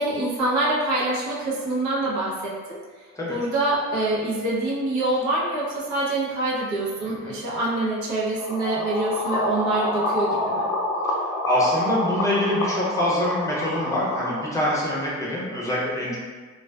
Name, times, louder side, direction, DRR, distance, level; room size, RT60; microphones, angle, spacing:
voice 1, 0.0-2.8 3.3-10.6 16.0-16.2, right 2 dB, 70° right, -5 dB, 0.8 m, -25 dB
sound 1, 8.4-14.4, left 1 dB, 65° left, 0.5 m, -27 dB
voice 2, 11.4-16.2, left 1 dB, 10° left, -7 dB, 0.7 m, -24 dB
2.4 x 2.3 x 2.2 m, 1.4 s
cardioid pair, 90°, 30 cm